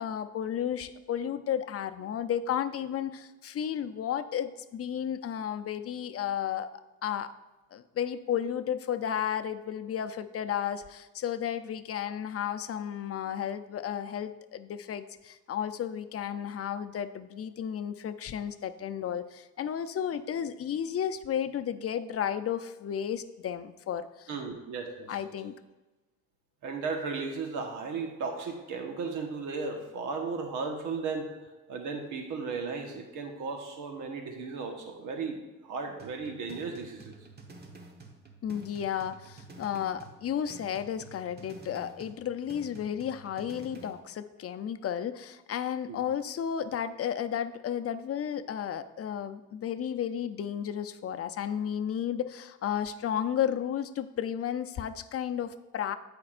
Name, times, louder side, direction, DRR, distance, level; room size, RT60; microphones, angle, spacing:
voice 1, 0.0-7.3 7.7-24.3 25.1-25.5 38.4-55.9, left 9 dB, 50° left, 10 dB, 0.6 m, -33 dB
voice 2, 24.3-25.2 26.6-31.3 31.7-37.2 45.9-46.0, right 4 dB, 90° right, 3 dB, 1.3 m, -35 dB
sound 1, 36.0-44.0, right 3 dB, 35° right, 1.3 m, -50 dB
15.0 x 5.3 x 2.5 m, 1.1 s
cardioid pair, 90°, 30 cm